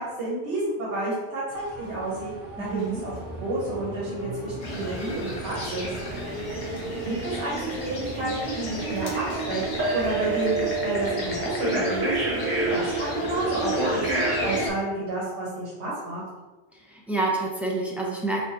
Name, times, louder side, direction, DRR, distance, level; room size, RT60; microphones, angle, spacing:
voice 1, 0.0-2.3 2.6-3.1 3.4-5.9 7.0-12.1 12.4-14.0 14.4-16.2, right 2 dB, 70° right, -7 dB, 1.4 m, -30 dB
sound 1, 1.5-14.7, right 2 dB, 45° right, 1.1 m, -30 dB
voice 2, 2.6-3.0 16.7-18.4, right 2 dB, ahead, -3 dB, 0.5 m, -28 dB
sound 2, 4.6-14.7, left 1 dB, 45° left, 0.9 m, -37 dB
4.0 x 3.6 x 2.8 m, 1.2 s
omnidirectional pair, 1.2 m